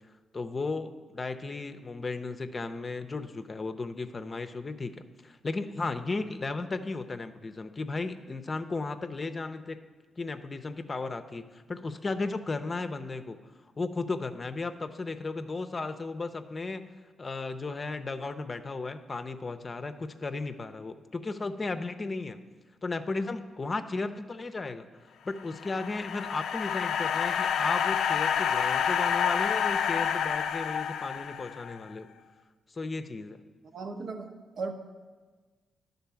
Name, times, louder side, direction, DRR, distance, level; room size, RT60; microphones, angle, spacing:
voice 1, 0.3-9.8 10.2-13.4 13.8-16.9 17.2-22.4 22.8-24.9 25.2-32.1 32.7-33.4, left 3 dB, 35° left, 9 dB, 0.6 m, -35 dB
sound 1, 25.4-31.8, left 8 dB, 85° left, 0.3 m, -28 dB
voice 2, 33.7-34.7, right 4 dB, 70° right, 4 dB, 0.9 m, -37 dB
10.5 x 4.0 x 6.9 m, 1.4 s
cardioid pair, 70°, 0 cm